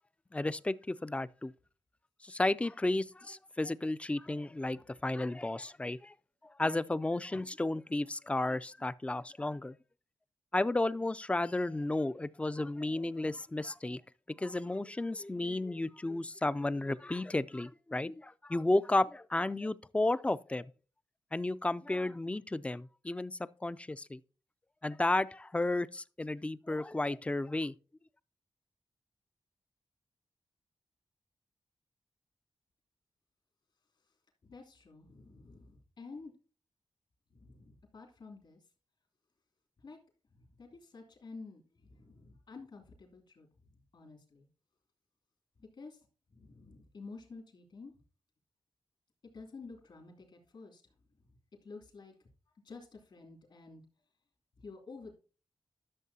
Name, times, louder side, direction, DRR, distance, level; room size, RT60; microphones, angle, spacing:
voice 1, 0.3-1.5 2.2-6.1 6.4-9.8 10.5-14.0 14.4-20.7 21.3-24.2 24.8-27.7, left 2 dB, 15° left, 0.4 m, -33 dB
voice 2, 34.4-36.3 37.3-38.6 39.8-40.0 40.6-43.5 43.9-44.5 45.6-46.0 46.3-47.9 49.3-50.8 51.6-52.1 52.6-53.8 54.6-55.1, left 4 dB, 70° left, 2.8 m, -50 dB
12.0 x 6.6 x 2.8 m
wide cardioid pair, 85°, 9 cm